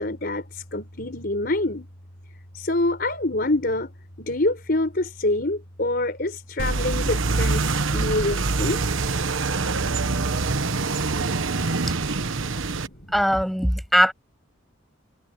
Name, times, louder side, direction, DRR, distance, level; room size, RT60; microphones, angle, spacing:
voice 1, 0.0-1.9 2.3-8.8 12.2-13.1, left 2 dB, 45° left, 4.5 m, -26 dB
sound 1, 6.6-12.9, right 3 dB, 70° right, 1.2 m, -25 dB
voice 2, 13.1-14.1, equal, ahead, 7.3 m, -20 dB
head